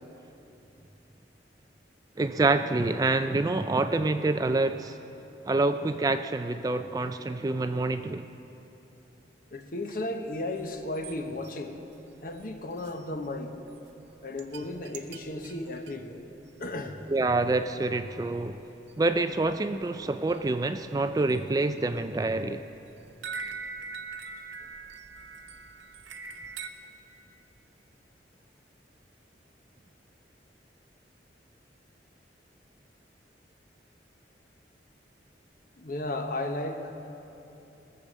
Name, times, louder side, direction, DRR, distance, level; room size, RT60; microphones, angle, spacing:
voice 1, 2.2-5.0 5.5-8.3 17.1-18.6 19.0-22.6, right 2 dB, 20° right, 9 dB, 0.3 m, -27 dB
voice 2, 9.5-11.8 12.2-13.5 14.2-16.3 16.6-17.0 35.8-36.9, left 2 dB, 50° left, 5 dB, 1.0 m, -34 dB
sound 1, 10.6-11.2 11.4-11.5 11.9-12.0 12.3-12.9 13.4-13.5 13.7-13.9 14.4-16.0 16.8-16.9 17.1-17.3 17.6-17.7 18.0-18.3 18.6-18.7 18.9-19.9 20.3-20.4 20.7-21.5 21.9-26.7, right 4 dB, 80° right, 0.7 m, -42 dB
20.0 x 6.8 x 7.3 m, 2.9 s
head